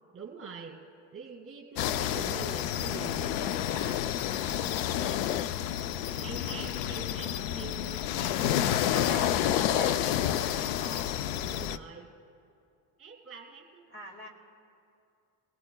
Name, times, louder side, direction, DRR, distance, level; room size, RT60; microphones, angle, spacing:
voice 1, 0.1-0.8 1.1-3.3 6.2-8.0 8.7-9.9 11.4-12.1 13.0-13.9, right 5 dB, 30° right, 1 dB, 2.3 m, -44 dB
sound 1, 1.8-11.8, left 11 dB, 80° left, 0.6 m, -29 dB
voice 2, 3.6-5.3 8.1-9.3 9.7-11.1 13.9-14.3, right 1 dB, 25° left, 2 dB, 2.0 m, -46 dB
21.0 x 16.5 x 2.3 m, 2.5 s
cardioid pair, 110°, 44 cm